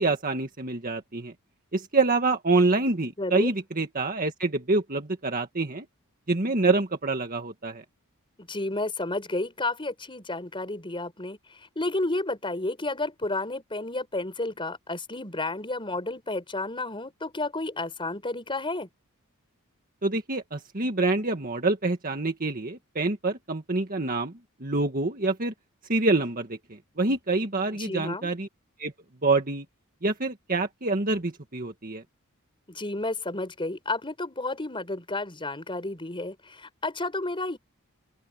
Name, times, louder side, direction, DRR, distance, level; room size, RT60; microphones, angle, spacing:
voice 1, 0.0-1.3 1.7-5.9 6.3-7.8 20.0-24.3 24.6-25.5 25.9-28.5 28.8-28.9 29.2-29.7 30.0-32.0, right 3 dB, 40° right, 1.8 m, -26 dB
voice 2, 3.2-3.5 8.4-18.9 27.8-28.3 32.7-37.6, left 2 dB, 25° left, 4.9 m, -31 dB
open air
head